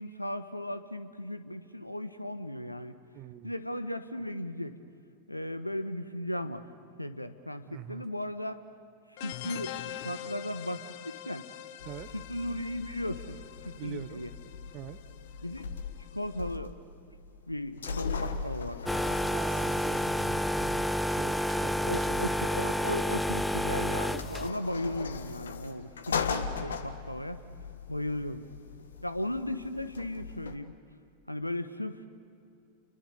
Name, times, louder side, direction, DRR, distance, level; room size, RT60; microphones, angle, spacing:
voice 1, 0.0-2.9 3.4-4.8 5.3-6.6 7.0-8.6 9.1-11.5 12.1-13.4 13.6-14.3 15.4-15.7 16.1-16.7 17.5-18.8 21.8-27.4 27.9-28.4 29.0-30.7 31.3-32.0, left 1 dB, 85° left, 12 dB, 1.2 m, -36 dB
voice 2, 3.1-3.5 7.7-8.0 11.8-12.2 13.8-14.2 14.7-15.0 17.9-18.0 19.3-22.2, right 13 dB, 40° right, 11 dB, 0.9 m, -44 dB
sound 1, 9.2-16.5, left 13 dB, 50° left, 0.8 m, -45 dB
sound 2, 11.8-30.6, left 5 dB, 65° left, 1.5 m, -40 dB
sound 3, 18.9-24.5, equal, 5° left, 0.5 m, -29 dB
30.0 x 23.0 x 6.8 m, 2.5 s
figure-of-eight pair, 90°, 0 cm